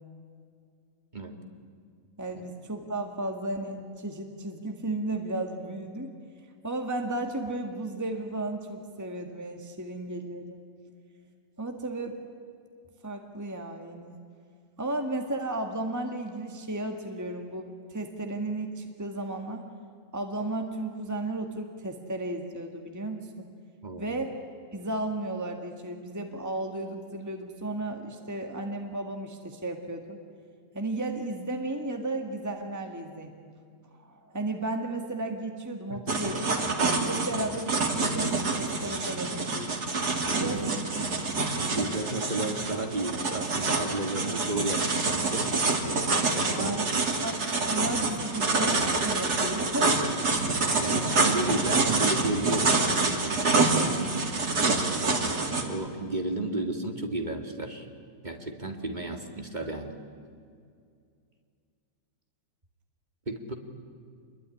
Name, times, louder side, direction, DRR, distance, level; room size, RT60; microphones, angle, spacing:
voice 1, 2.2-6.1 6.6-10.6 11.6-12.2 13.0-14.2 14.8-19.6 20.1-23.4 24.0-24.3 24.7-30.2 30.7-33.3 34.0-36.5 37.1-39.8 40.3-41.0 46.6-46.9 47.2-50.1, right 2 dB, 10° right, 4 dB, 1.8 m, -34 dB
voice 2, 23.8-24.2 35.9-36.2 40.4-40.7 41.7-45.5 46.3-46.8 50.8-53.4 55.5-57.9 58.2-60.0 63.3-63.5, right 2 dB, 30° right, 4 dB, 2.2 m, -33 dB
sound 1, 36.1-55.6, right 3 dB, 80° right, 3.1 m, -27 dB
27.0 x 21.5 x 9.9 m, 2.3 s
omnidirectional pair, 1.7 m